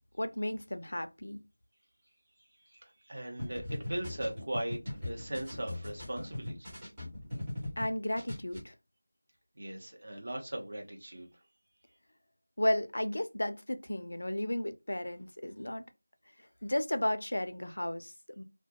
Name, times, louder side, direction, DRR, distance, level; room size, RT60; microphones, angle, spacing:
voice 1, 0.2-1.4 7.8-8.7 12.6-15.8 16.6-18.4, left 1 dB, 65° left, 0.4 m, -33 dB
voice 2, 2.7-6.8 9.6-11.3, right 1 dB, 45° right, 0.8 m, -39 dB
sound 1, 3.4-7.9 8.2-8.6, left 1 dB, 10° right, 1.0 m, -39 dB
2.2 x 2.2 x 2.7 m
figure-of-eight pair, 175°, 0 cm